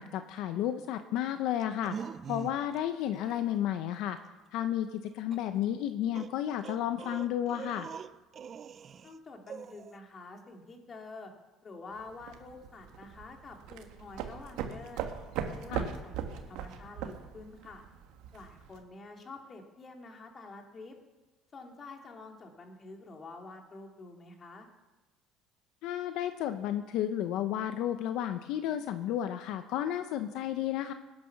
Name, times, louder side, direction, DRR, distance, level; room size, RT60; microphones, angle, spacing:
voice 1, 0.0-2.0 2.3-4.2 4.5-7.9 15.7-15.9 25.8-30.9, left 11 dB, 70° left, 8 dB, 0.8 m, -32 dB
sound 1, 1.6-2.8 3.1-3.4 5.3-5.4 6.1-9.2 9.5-10.0, right 7 dB, 40° right, 0.5 m, -43 dB
voice 2, 9.0-11.3 11.6-15.1 15.5-17.8 18.3-21.0 21.5-24.7, left 3 dB, 30° left, 2 dB, 2.7 m, -48 dB
sound 2, 11.9-18.8, right 8 dB, 75° right, 1.7 m, -40 dB
20.5 x 9.7 x 6.0 m, 1.1 s
cardioid pair, 115°, 0 cm